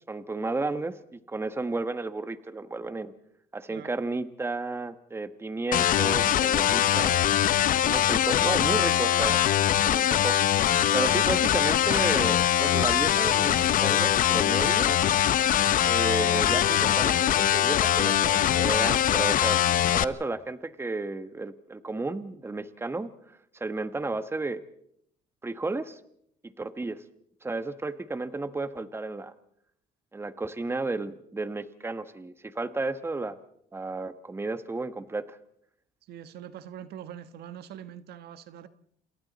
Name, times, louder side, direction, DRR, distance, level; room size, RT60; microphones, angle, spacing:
voice 1, 0.1-3.1 3.5-7.2 7.8-9.4 9.8-10.4 10.9-13.6 13.8-15.0 15.8-19.6 19.9-24.6 25.4-26.0 26.6-27.0 27.4-29.3 30.1-33.4 33.7-35.4, right 3 dB, 15° right, 11 dB, 1.3 m, -32 dB
sound 1, 5.7-20.0, left 11 dB, 55° left, 0.8 m, -23 dB
voice 2, 36.1-38.7, right 9 dB, 70° right, 11 dB, 1.4 m, -43 dB
28.5 x 28.0 x 4.2 m, 0.72 s
cardioid pair, 110°, 17 cm